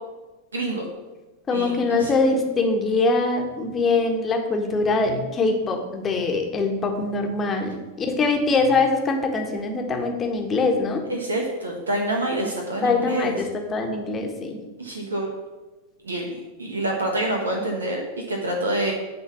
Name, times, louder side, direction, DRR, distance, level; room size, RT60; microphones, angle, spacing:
voice 1, 0.5-0.9 1.5-2.1 11.1-13.3 14.8-15.3 16.0-16.3 16.6-18.9, right 1 dB, 75° right, 1 dB, 1.2 m, -27 dB
voice 2, 1.5-11.1 12.8-14.6, left 3 dB, 20° left, 2 dB, 1.4 m, -23 dB
9.5 x 3.9 x 7.1 m, 1.2 s
figure-of-eight pair, 90°, 0 cm